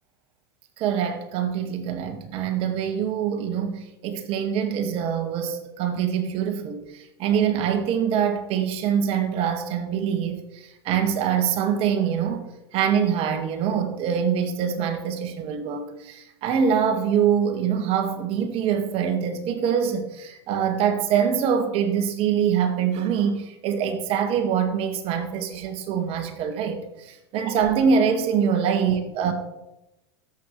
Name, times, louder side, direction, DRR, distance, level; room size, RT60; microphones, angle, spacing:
voice 1, 0.8-12.4 12.7-29.3, right 7 dB, 45° right, 5 dB, 1.9 m, -24 dB
17.5 x 8.4 x 3.3 m, 0.92 s
hypercardioid pair, 90°, 13 cm